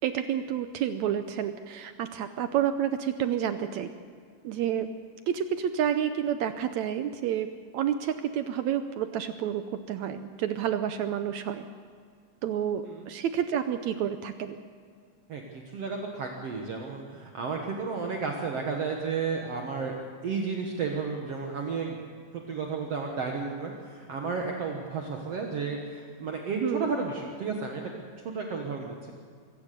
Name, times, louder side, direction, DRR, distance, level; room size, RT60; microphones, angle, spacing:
voice 1, 0.0-3.9 4.4-4.9 5.3-7.5 7.7-11.7 12.4-14.6 26.6-26.9, right 9 dB, 75° right, 9 dB, 1.8 m, -29 dB
voice 2, 15.3-22.0 22.3-27.8 28.3-29.1, right 4 dB, 55° right, 1 dB, 2.3 m, -33 dB
23.5 x 16.5 x 6.8 m, 2.1 s
omnidirectional pair, 3.7 m